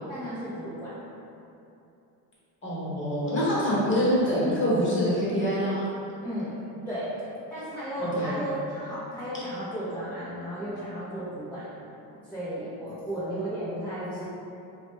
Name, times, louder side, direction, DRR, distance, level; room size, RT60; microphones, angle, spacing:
voice 1, 0.1-0.9 6.2-6.5 6.9-7.1 7.5-11.7 12.3-14.2, right 1 dB, 5° left, -11 dB, 0.4 m, -34 dB
voice 2, 2.6-5.9 8.0-8.4 9.3-9.4, equal, 30° left, -9 dB, 1.0 m, -25 dB
2.8 x 2.1 x 3.1 m, 2.8 s
cardioid pair, 115°, 40 cm